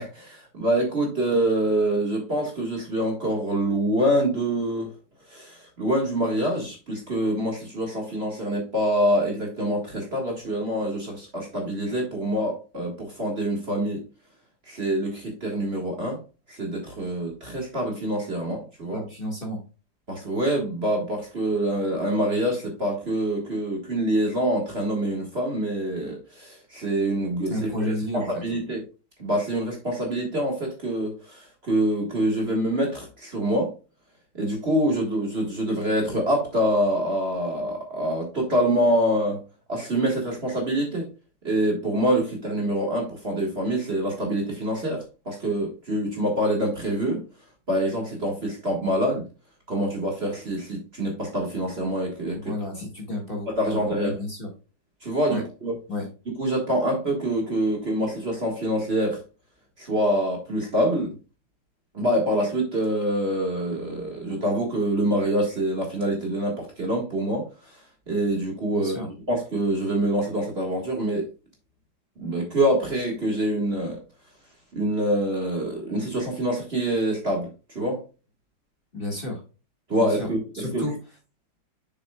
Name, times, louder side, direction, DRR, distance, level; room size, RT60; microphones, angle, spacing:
voice 1, 0.0-4.9 5.3-14.0 14.7-16.2 16.5-19.0 20.1-28.8 29.2-33.7 34.3-39.4 39.7-41.1 41.4-47.2 47.7-49.2 49.7-52.5 53.5-54.2 55.0-55.7 56.4-59.2 59.8-61.1 61.9-67.5 68.1-71.2 72.2-74.0 74.7-77.5 77.7-78.0 79.9-80.8, right 1 dB, 35° right, 0 dB, 1.8 m, -25 dB
voice 2, 18.9-19.6 27.5-28.4 52.3-54.5 55.3-55.4 55.9-56.1 68.7-69.1 78.9-79.4 80.0-80.3 80.5-80.9, left 1 dB, 30° left, -1 dB, 2.0 m, -31 dB
7.1 x 6.5 x 2.3 m, 0.32 s
omnidirectional pair, 2.1 m